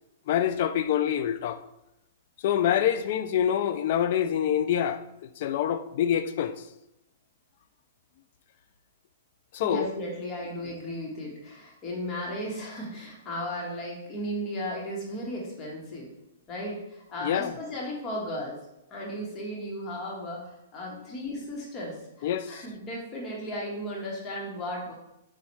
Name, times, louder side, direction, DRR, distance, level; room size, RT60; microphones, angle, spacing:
voice 1, 0.3-1.6 2.4-5.0 5.4-6.6 9.5-9.9 17.2-17.5 22.2-22.6, left 9 dB, 55° left, 0.3 m, -26 dB
voice 2, 9.6-16.1 16.5-18.6 18.9-24.9, equal, 25° left, 1.0 m, -35 dB
4.1 x 2.3 x 4.5 m
hypercardioid pair, 145°, 0 cm